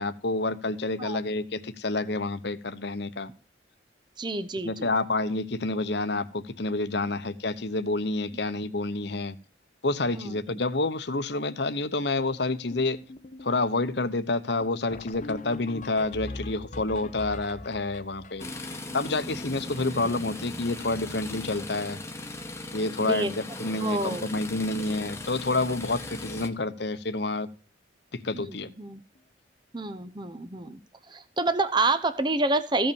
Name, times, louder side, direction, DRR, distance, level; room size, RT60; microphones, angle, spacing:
voice 1, 0.0-3.3 4.6-9.3 9.8-13.0 13.4-22.0 22.7-27.5 28.1-28.7, left 2 dB, 60° left, 11 dB, 1.0 m, -29 dB
voice 2, 4.2-4.9 10.1-10.6 19.9-20.1 23.0-23.3 23.8-24.3 28.3-29.0 29.7-32.9, right 2 dB, 25° right, 11 dB, 0.8 m, -29 dB
sound 1, 12.2-20.4 20.7-20.8 21.0-21.2 21.5-22.0 22.3-22.6 23.4-23.5 23.9-24.0 24.3-24.5 26.7-26.8 29.1-29.2, left 1 dB, 40° left, 0.7 m, -43 dB
sound 2, 18.4-26.5, left 2 dB, 15° left, 1.1 m, -38 dB
15.0 x 5.5 x 7.1 m, 0.36 s
head